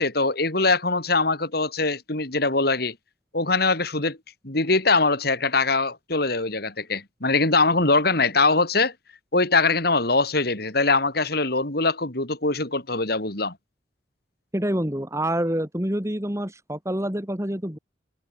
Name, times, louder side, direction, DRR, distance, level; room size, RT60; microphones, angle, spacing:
voice 1, 0.0-3.0 3.3-4.2 4.4-8.9 9.3-13.5, left 3 dB, 55° left, 3.9 m, -22 dB
voice 2, 14.5-17.8, right 1 dB, 15° right, 2.7 m, -27 dB
head